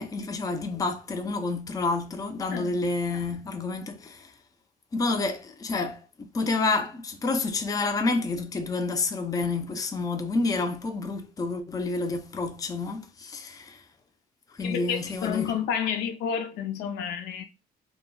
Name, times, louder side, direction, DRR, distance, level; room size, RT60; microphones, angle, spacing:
voice 1, 0.0-4.3 4.9-13.8 14.6-15.5, left 3 dB, 20° left, 0.4 m, -29 dB
voice 2, 14.6-17.4, left 8 dB, 85° left, 0.5 m, -30 dB
2.2 x 2.1 x 3.6 m
cardioid pair, 110°, 17 cm